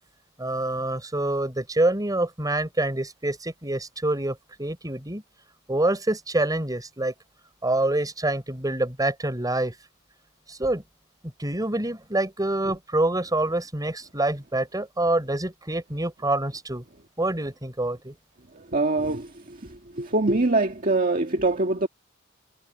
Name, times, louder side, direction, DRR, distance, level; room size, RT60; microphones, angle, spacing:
voice 1, 0.4-5.2 5.7-7.1 7.6-9.7 10.5-10.8 11.4-16.8 17.2-18.1, right 2 dB, 20° right, 4.5 m, -26 dB
voice 2, 18.5-21.9, right 2 dB, 40° right, 1.8 m, -24 dB
head